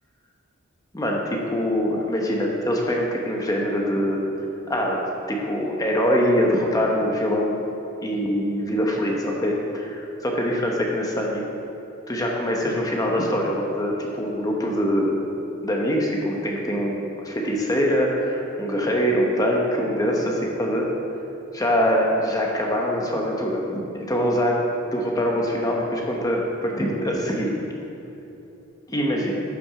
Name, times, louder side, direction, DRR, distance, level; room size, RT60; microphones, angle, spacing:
voice 1, 0.9-4.2 4.7-5.0 5.3-7.7 8.0-11.5 12.1-15.2 15.6-20.9 21.5-24.6 24.9-27.5 28.9-29.4, equal, 15° left, -1 dB, 1.0 m, -23 dB
12.0 x 6.0 x 4.9 m, 2.9 s
head